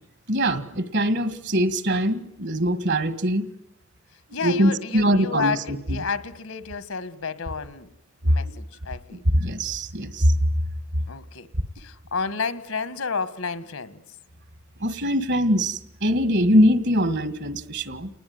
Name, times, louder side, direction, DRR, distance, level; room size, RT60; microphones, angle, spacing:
voice 1, 0.3-3.4 4.4-6.0 8.3-8.5 9.3-10.4 14.8-18.1, equal, 55° right, 1.9 m, -22 dB
voice 2, 4.3-7.9 8.2-9.2 11.1-11.5 11.8-14.0, left 5 dB, 75° left, 1.7 m, -31 dB
29.5 x 20.0 x 9.6 m
head